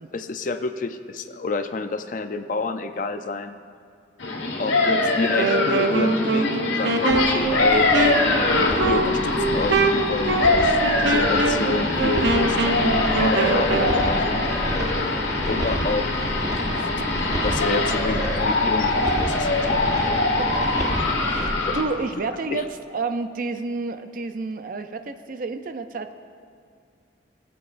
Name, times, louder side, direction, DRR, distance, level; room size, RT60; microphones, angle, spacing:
voice 1, 0.1-3.6 4.6-7.9 8.8-10.7 11.0-12.6 13.2-14.5 15.5-16.1 16.6-17.1 17.4-20.3 21.6-21.7 22.5-22.7, left 3 dB, 45° left, 9 dB, 0.5 m, -29 dB
sound 1, 4.2-21.8, left 2 dB, 85° left, 1.4 m, -23 dB
Wind instrument woodwind instrument, 5.3-14.0, right 3 dB, 80° right, 0.8 m, -24 dB
sound 2, 7.1-21.5, right 1 dB, 20° right, 0.8 m, -30 dB
voice 2, 11.2-11.6 15.0-15.5 20.4-20.7 21.3-26.1, right 3 dB, 45° right, 9 dB, 0.5 m, -31 dB
19.5 x 8.5 x 2.5 m, 2.3 s
head